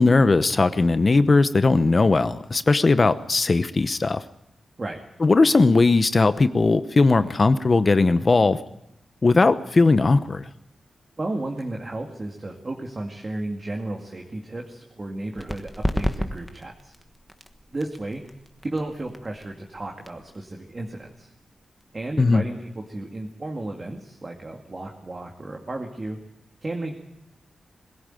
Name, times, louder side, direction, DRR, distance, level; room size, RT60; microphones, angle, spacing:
voice 1, 0.0-4.2 5.2-8.6 9.2-10.4 22.2-22.4, left 3 dB, 35° left, 12 dB, 0.9 m, -18 dB
voice 2, 11.2-16.9 17.7-18.2 18.6-21.3 21.9-26.2 26.6-26.9, right 2 dB, 30° right, 1 dB, 2.2 m, -33 dB
sound 1, 15.4-22.7, equal, ahead, 1.3 m, -34 dB
21.5 x 16.5 x 9.1 m, 0.83 s
wide cardioid pair, 130°, 0 cm